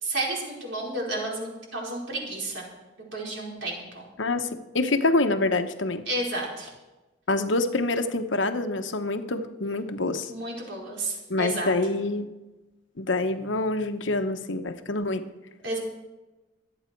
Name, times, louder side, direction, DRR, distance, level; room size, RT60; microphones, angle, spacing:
voice 1, 0.0-2.6 3.1-4.0 6.1-6.7 10.3-11.7 15.6-15.8, right 2 dB, 80° right, -2 dB, 4.8 m, -31 dB
voice 2, 4.2-6.0 7.3-10.3 11.3-12.3 13.0-15.2, left 2 dB, 80° left, 7 dB, 1.0 m, -26 dB
26.0 x 8.8 x 4.6 m, 1.1 s
head